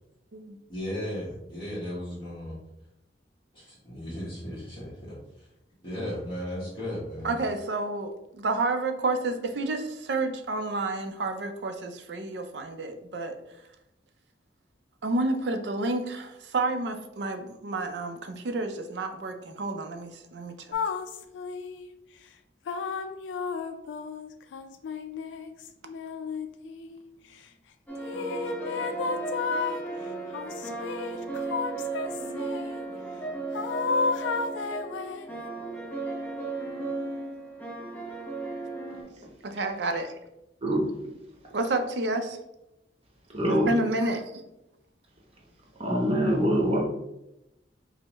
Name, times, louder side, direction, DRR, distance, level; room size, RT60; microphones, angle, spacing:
voice 1, 0.7-2.6 3.5-5.5 5.8-7.3, equal, 25° left, -10 dB, 1.2 m, -36 dB
voice 2, 7.2-13.4 15.0-20.6 39.4-40.1 41.5-42.4 43.5-44.4, right 2 dB, 65° right, 6 dB, 0.5 m, -30 dB
sound 1, 20.7-21.9 22.7-27.0 28.0-29.8 30.3-32.7 33.5-35.4, left 4 dB, 85° left, 0.3 m, -32 dB
sound 2, 27.9-39.0, right 3 dB, 10° left, 0.8 m, -35 dB
voice 3, 43.3-43.7 44.0-44.1 45.8-46.8, equal, 35° right, -2 dB, 0.9 m, -24 dB
5.3 x 2.1 x 2.9 m, 0.88 s
head